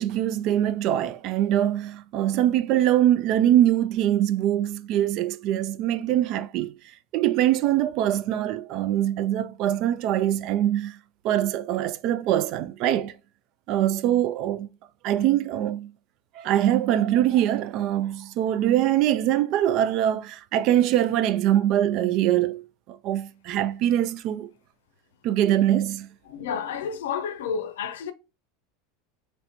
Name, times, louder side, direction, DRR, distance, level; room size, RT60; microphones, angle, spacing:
voice 1, 0.0-6.7 7.1-11.0 11.2-13.1 13.7-14.7 15.0-15.9 16.4-22.6 22.9-24.5 25.2-26.1, right 12 dB, 55° right, 0.3 m, -23 dB
voice 2, 26.3-28.1, left 7 dB, 85° left, 0.5 m, -30 dB
4.3 x 3.1 x 2.7 m
supercardioid pair, 120°, 0 cm